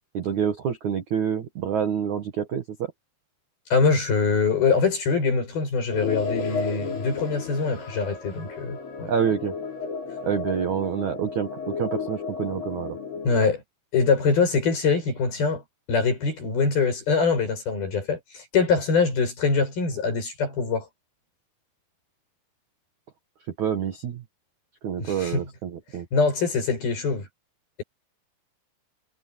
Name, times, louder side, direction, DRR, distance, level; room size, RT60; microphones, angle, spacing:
voice 1, 0.1-2.6 9.1-9.5 10.2-13.0 23.6-24.2 24.8-26.1, right 8 dB, 60° right, 2.1 m, -27 dB
voice 2, 3.7-9.1 13.2-13.6 13.9-15.6 15.9-20.8 25.0-25.5 26.1-27.3, left 5 dB, 45° left, 9.6 m, -23 dB
sound 1, 5.9-13.5, left 5 dB, 75° left, 10.0 m, -33 dB
omnidirectional pair, 5.8 m